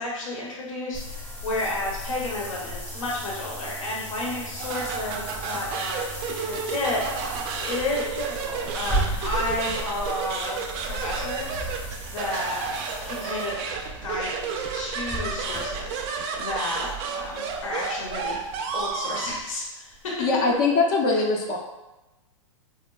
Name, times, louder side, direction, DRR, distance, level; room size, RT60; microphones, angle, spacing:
voice 1, 0.0-7.0 7.5-13.7 14.0-18.4 18.7-20.3 21.1-21.2, left 2 dB, 75° left, -3 dB, 0.9 m, -32 dB
sound 1, 0.9-19.6 19.9-20.0 20.5-20.6, right 1 dB, 5° left, 0.7 m, -36 dB
sound 2, 4.6-19.3, right 5 dB, 35° right, 0.3 m, -32 dB
voice 2, 20.2-21.6, left 3 dB, 45° left, 0 dB, 0.5 m, -22 dB
4.3 x 2.1 x 2.2 m, 1.0 s
hypercardioid pair, 130°, 17 cm